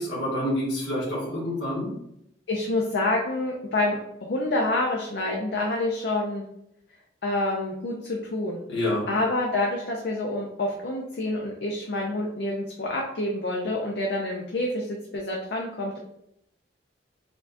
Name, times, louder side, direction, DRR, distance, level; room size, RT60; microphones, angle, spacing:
voice 1, 0.0-1.9 8.7-9.1, left 1 dB, 90° left, -7 dB, 1.3 m, -27 dB
voice 2, 2.5-6.4 7.2-8.6 9.1-16.0, left 2 dB, 60° left, -1 dB, 0.5 m, -27 dB
4.2 x 2.3 x 2.7 m, 0.78 s
head